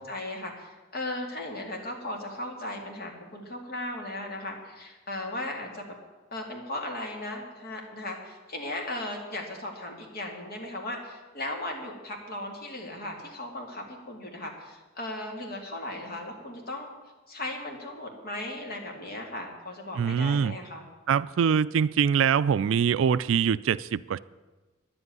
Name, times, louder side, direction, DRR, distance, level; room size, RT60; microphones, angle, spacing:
voice 1, 0.0-5.9 6.3-17.0 17.3-20.9, left 1 dB, 45° left, 2.3 m, -37 dB
voice 2, 20.0-20.5 21.1-24.2, right 7 dB, 65° right, 0.3 m, -24 dB
10.5 x 7.9 x 9.5 m
head